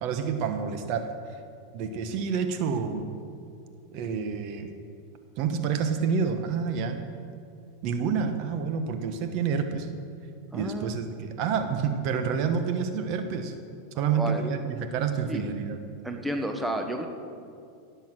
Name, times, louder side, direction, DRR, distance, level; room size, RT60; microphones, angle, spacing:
voice 1, 0.0-1.1 1.7-3.0 3.9-4.7 5.4-7.0 7.8-9.9 10.5-13.5 14.0-15.8, right 6 dB, 55° right, 7 dB, 1.1 m, -28 dB
voice 2, 10.5-11.0 14.0-14.4 15.3-15.4 16.0-17.1, equal, 5° right, 4 dB, 1.1 m, -31 dB
17.0 x 7.1 x 6.2 m, 2.4 s
hypercardioid pair, 120°, 0 cm